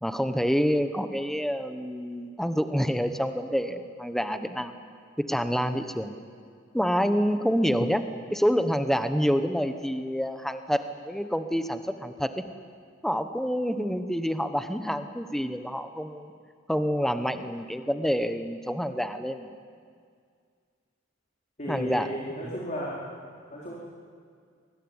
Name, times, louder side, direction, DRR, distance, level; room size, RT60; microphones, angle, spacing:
voice 1, 0.0-4.7 5.2-6.2 6.7-8.0 8.3-12.4 13.0-16.3 16.7-19.5 21.7-22.1, equal, ahead, 8 dB, 1.2 m, -27 dB
voice 2, 21.6-23.0 23.5-23.7, equal, 35° left, -5 dB, 4.5 m, -34 dB
27.0 x 21.0 x 9.7 m, 2.1 s
head